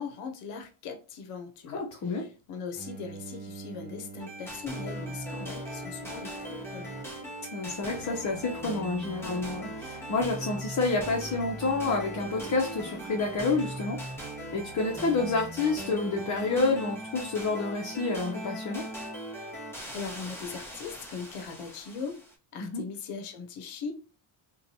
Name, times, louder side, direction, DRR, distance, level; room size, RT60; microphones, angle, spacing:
voice 1, 0.0-6.9 19.9-22.2 22.5-23.9, left 5 dB, 90° left, 0.7 m, -40 dB
voice 2, 1.7-2.2 7.5-18.8 22.6-22.8, left 3 dB, 40° left, 0.6 m, -29 dB
Bowed string instrument, 2.7-10.0, right 3 dB, 20° right, 0.4 m, -46 dB
sound 1, 4.2-22.3, right 1 dB, 5° left, 0.8 m, -39 dB
2.9 x 2.2 x 2.6 m
cardioid pair, 110°, 50 cm